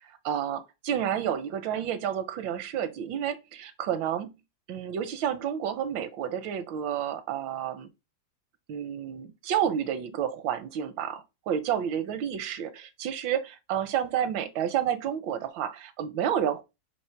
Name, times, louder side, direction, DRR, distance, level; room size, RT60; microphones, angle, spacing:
voice 1, 0.1-4.3 4.7-7.9 8.7-16.6, right 9 dB, 85° right, 1.4 m, -30 dB
3.9 x 3.0 x 4.4 m
omnidirectional pair, 2.1 m